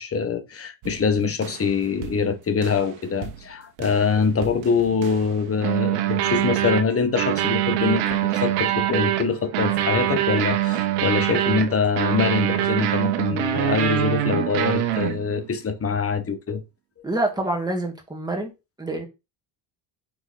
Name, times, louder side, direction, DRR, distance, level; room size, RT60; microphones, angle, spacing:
voice 1, 0.0-16.6, left 5 dB, 30° left, 1.3 m, -24 dB
sound 1, 0.8-1.0 1.4-1.7 2.0-2.2 2.6-2.9 3.2-3.4 3.8-4.1 4.4-5.3 5.6-15.5, right 13 dB, 90° right, 1.2 m, -24 dB
voice 2, 17.0-18.5 18.8-19.1, right 2 dB, 10° right, 2.5 m, -26 dB
6.1 x 4.5 x 4.0 m
supercardioid pair, 95°, 46 cm